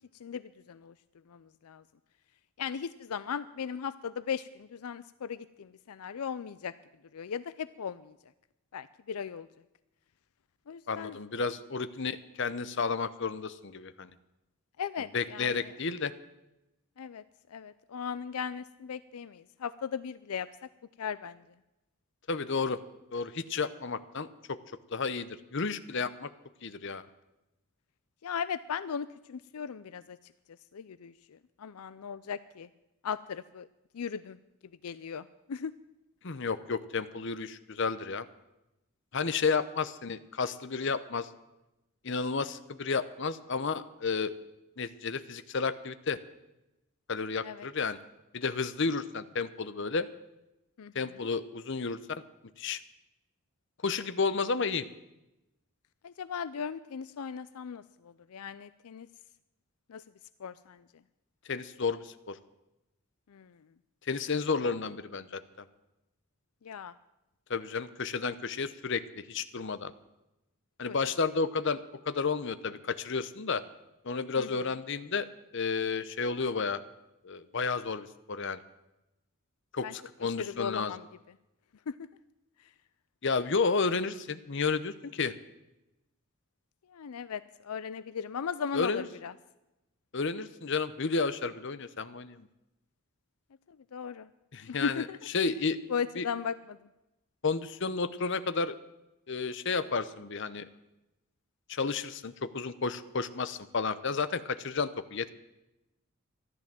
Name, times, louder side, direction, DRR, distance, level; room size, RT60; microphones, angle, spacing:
voice 1, 0.2-0.9 1.3-1.8 2.6-6.7 7.1-8.1 8.7-9.5 10.7-11.2 14.8-15.7 17.0-17.2 17.5-20.5 21.0-21.4 28.2-30.2 30.7-32.7 33.0-33.7 33.9-34.4 34.8-35.7 47.4-47.7 50.8-51.3 56.0-59.1 59.9-60.0 60.4-60.8 63.3-63.6 66.6-66.9 74.4-74.5 79.8-79.9 80.2-81.1 81.9-82.1 82.6-82.7 86.9-89.3 93.7-94.3 94.7-95.2 95.9-96.8, left 6 dB, 80° left, 15 dB, 0.5 m, -37 dB
voice 2, 10.9-14.1 15.1-16.1 22.3-22.8 23.1-24.6 24.9-26.3 26.6-27.0 36.2-38.3 39.1-41.3 42.0-44.3 44.8-46.2 47.1-48.0 48.3-50.1 50.9-52.2 52.6-52.8 53.8-54.9 61.5-62.4 64.0-65.7 67.5-69.9 70.8-71.8 72.0-73.6 74.0-75.3 75.5-76.8 77.2-78.6 79.7-80.9 83.2-85.3 88.7-89.1 90.1-92.5 94.5-95.0 95.3-95.8 96.2-96.3 97.4-98.7 99.3-100.6 101.7-105.3, left 4 dB, 55° left, 13 dB, 0.7 m, -32 dB
14.0 x 12.0 x 7.5 m, 0.93 s
head